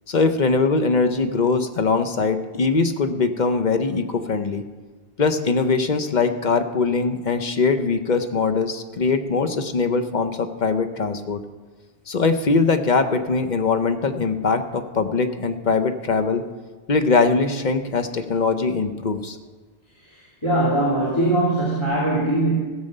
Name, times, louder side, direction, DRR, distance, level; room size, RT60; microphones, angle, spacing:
voice 1, 0.1-4.6 5.2-11.4 12.1-16.4 16.9-19.4, left 4 dB, 45° left, 8 dB, 0.9 m, -21 dB
voice 2, 20.4-22.6, right 1 dB, 25° left, -6 dB, 2.7 m, -21 dB
16.0 x 7.4 x 6.6 m, 1.3 s
omnidirectional pair, 1.2 m